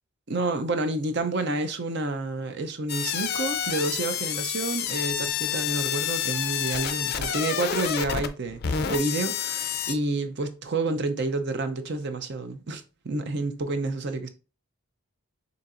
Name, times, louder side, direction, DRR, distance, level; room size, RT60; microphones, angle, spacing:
voice 1, 0.3-14.3, right 2 dB, 50° right, 0.6 m, -29 dB
sound 1, 2.9-9.9, left 9 dB, 45° left, 0.4 m, -29 dB
6.8 x 2.8 x 2.5 m
head